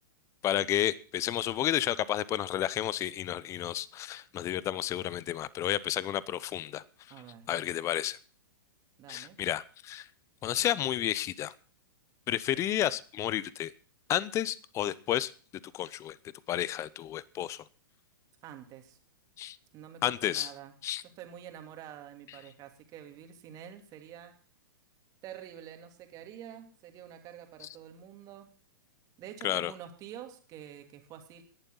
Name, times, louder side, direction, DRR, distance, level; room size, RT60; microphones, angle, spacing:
voice 1, 0.4-6.8 7.5-8.2 9.1-10.1 10.4-11.5 12.3-13.7 14.1-15.3 15.7-16.2 16.5-17.6 19.4-19.6 20.0-20.5 20.8-21.0 27.6-27.7 29.4-29.7, left 12 dB, 25° left, 20 dB, 0.8 m, -31 dB
voice 2, 7.1-7.5 9.0-9.4 12.5-12.6 18.4-19.0 19.7-20.7 21.2-24.4 25.2-28.5 29.2-31.4, right 10 dB, 35° right, 5 dB, 2.8 m, -47 dB
18.0 x 11.5 x 4.0 m, 0.41 s
figure-of-eight pair, 110°, 11 cm